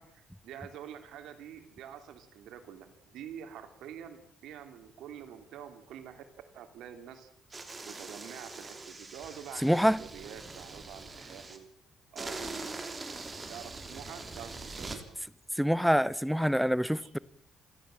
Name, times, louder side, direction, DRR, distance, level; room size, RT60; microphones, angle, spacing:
voice 1, 0.0-6.2 6.5-7.3 7.8-11.7 12.1-12.9 13.5-15.0 17.0-17.1, right 9 dB, 85° right, 2.8 m, -47 dB
sound 1, 7.5-11.6 12.2-15.0, right 3 dB, 30° right, 3.6 m, -43 dB
voice 2, 9.6-10.0 15.6-17.2, equal, ahead, 0.8 m, -26 dB
28.5 x 12.5 x 7.6 m
cardioid pair, 90°, 0 cm